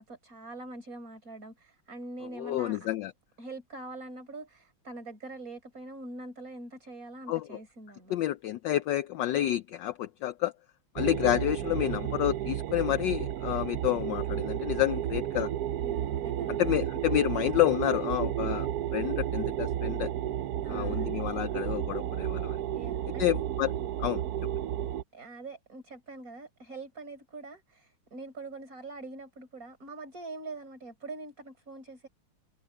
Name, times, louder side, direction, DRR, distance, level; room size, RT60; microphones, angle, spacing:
voice 1, 0.0-2.9 3.4-8.2 15.8-16.6 20.6-21.1 22.7-23.3 25.1-32.1, right 2 dB, 40° right, 5.7 m, -43 dB
voice 2, 2.4-3.1 7.3-7.4 8.1-10.5 10.9-15.5 16.6-20.1 20.7-22.6 23.2-23.7 24.0-24.2, left 14 dB, 75° left, 1.1 m, -29 dB
sound 1, 11.0-25.0, right 11 dB, 85° right, 0.8 m, -32 dB
omnidirectional pair, 2.4 m